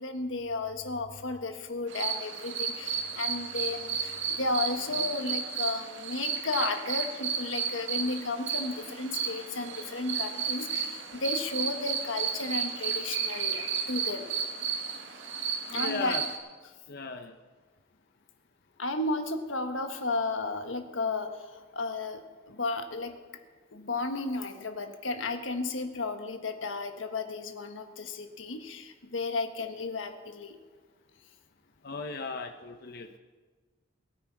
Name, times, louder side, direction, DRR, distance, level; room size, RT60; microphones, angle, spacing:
voice 1, 0.0-14.3 15.7-16.2 18.8-22.2 22.5-23.2 23.7-30.6, left 3 dB, 85° left, 7 dB, 1.3 m, -33 dB
sound 1, 1.9-16.4, right 6 dB, 70° right, 1.8 m, -33 dB
voice 2, 15.7-16.2 16.9-17.4 31.8-33.2, left 4 dB, 55° left, 6 dB, 0.7 m, -37 dB
21.5 x 9.6 x 4.7 m, 1.4 s
head